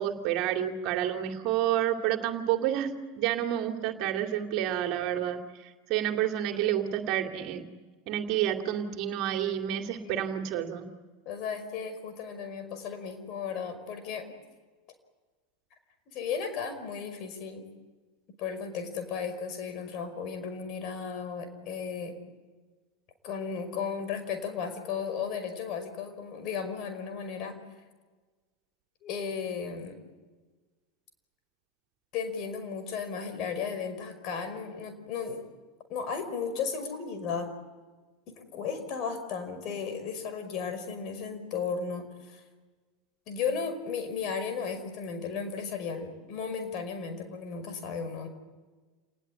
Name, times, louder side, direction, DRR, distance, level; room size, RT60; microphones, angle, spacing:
voice 1, 0.0-7.6 8.1-10.9, right 11 dB, 50° right, 4 dB, 2.6 m, -29 dB
voice 2, 11.3-14.3 16.1-17.7 18.4-22.2 23.2-27.6 29.0-30.0 32.1-35.4 35.9-37.5 38.3-42.4 43.3-48.3, left 6 dB, 45° left, 8 dB, 5.2 m, -35 dB
29.0 x 20.0 x 8.8 m, 1.3 s
figure-of-eight pair, 80°, 0 cm